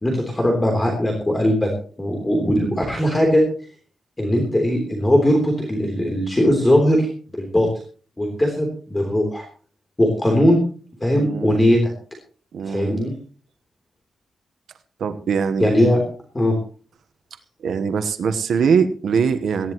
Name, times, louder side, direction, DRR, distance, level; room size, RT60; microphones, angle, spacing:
voice 1, 0.0-1.7 2.0-3.4 4.2-7.1 7.4-7.7 8.2-9.5 10.0-10.6 11.0-11.9 12.7-13.1 15.6-16.0 16.3-16.5, equal, 15° left, 1 dB, 3.4 m, -19 dB
voice 2, 11.1-11.6 12.5-13.0 15.0-15.7 17.6-19.7, right 6 dB, 70° right, 9 dB, 1.1 m, -22 dB
19.0 x 15.5 x 3.1 m, 0.41 s
wide cardioid pair, 170°, 0 cm